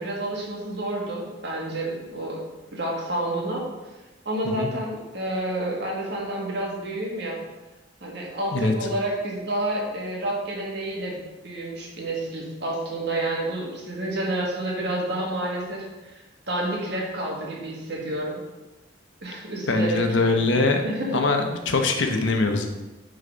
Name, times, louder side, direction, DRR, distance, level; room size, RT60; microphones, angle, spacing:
voice 1, 0.0-2.4 2.7-3.6 4.2-7.4 8.0-11.2 11.4-18.4 19.2-21.2, right 1 dB, 65° right, -2 dB, 1.7 m, -29 dB
voice 2, 19.7-20.8 21.1-22.7, left 3 dB, 80° left, 4 dB, 0.9 m, -22 dB
6.7 x 4.0 x 5.2 m, 1.1 s
head